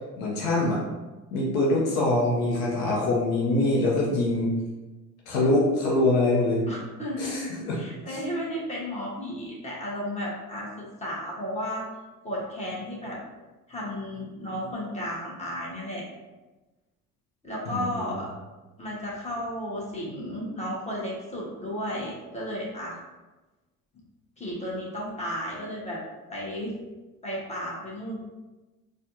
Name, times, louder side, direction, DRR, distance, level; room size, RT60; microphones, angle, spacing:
voice 1, 0.2-0.8 1.3-4.5 5.3-6.6 7.2-7.8 8.1-8.2 17.7-18.1, left 2 dB, 65° left, -4 dB, 0.9 m, -24 dB
voice 2, 6.7-11.8 12.2-13.2 13.7-16.0 17.4-18.3 18.8-23.0 24.4-26.0 26.3-26.7 27.2-28.2, equal, 15° left, -5 dB, 1.4 m, -33 dB
4.2 x 2.5 x 2.7 m, 1.2 s
figure-of-eight pair, 55°, 44 cm